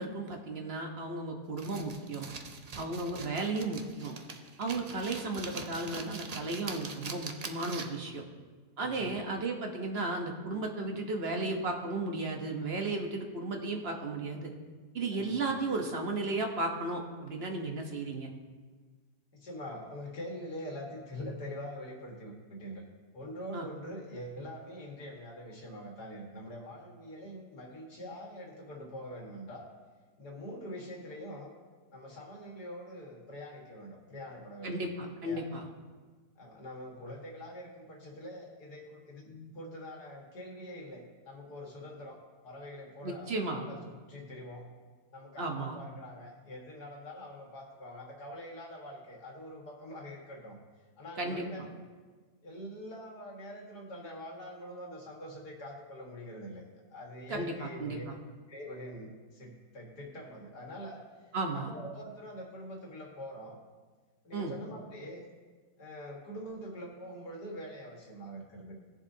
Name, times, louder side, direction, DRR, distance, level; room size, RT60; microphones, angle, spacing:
voice 1, 0.0-2.3 2.8-4.2 4.6-8.2 8.8-14.5 14.9-18.3 23.5-23.7 34.6-35.7 43.0-43.6 45.4-45.8 51.2-51.4 57.3-58.2 61.3-61.7 64.3-64.5, right 2 dB, 45° right, 3 dB, 1.2 m, -34 dB
sound 1, 1.6-8.1, right 4 dB, 75° right, 0.3 m, -43 dB
voice 2, 8.8-9.2 15.1-15.3 19.3-22.8 23.1-29.7 30.2-31.5 31.9-34.8 35.2-35.4 36.4-42.2 42.4-44.7 45.1-50.6 51.0-51.7 52.4-56.6 56.9-58.0 58.5-61.0 61.5-63.6 64.2-65.3 65.8-68.7, equal, 90° left, -1 dB, 2.2 m, -44 dB
18.0 x 7.2 x 2.7 m, 1.4 s
omnidirectional pair, 1.7 m